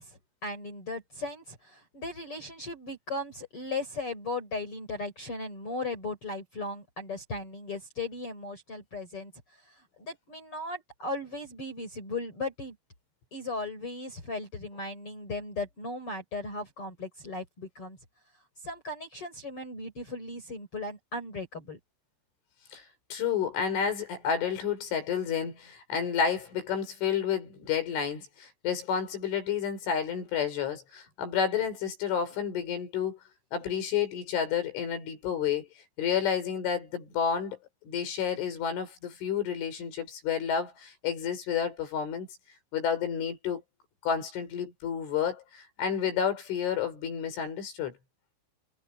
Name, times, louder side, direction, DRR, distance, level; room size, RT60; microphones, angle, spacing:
voice 1, 0.0-12.8 13.3-18.0 18.6-21.8, left 2 dB, 30° left, 4.8 m, -37 dB
voice 2, 23.1-33.2 33.5-35.7 36.0-37.6 37.8-42.3 42.7-43.6 44.0-48.0, left 7 dB, 75° left, 7.5 m, -30 dB
omnidirectional pair, 5.7 m